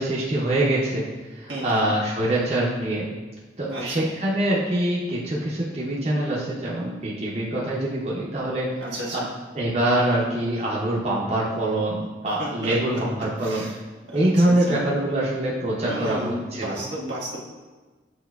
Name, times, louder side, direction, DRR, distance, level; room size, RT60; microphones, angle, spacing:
voice 1, 0.0-3.1 3.6-8.7 9.1-9.2 9.5-13.7 14.1-16.7, right 1 dB, 35° right, -6 dB, 0.7 m, -24 dB
voice 2, 1.5-1.8 3.7-4.1 8.8-9.3 12.4-13.0 13.4-13.8 14.1-14.8 15.8-17.4, right 1 dB, 85° right, -5 dB, 1.4 m, -32 dB
7.9 x 2.9 x 2.3 m, 1.3 s
head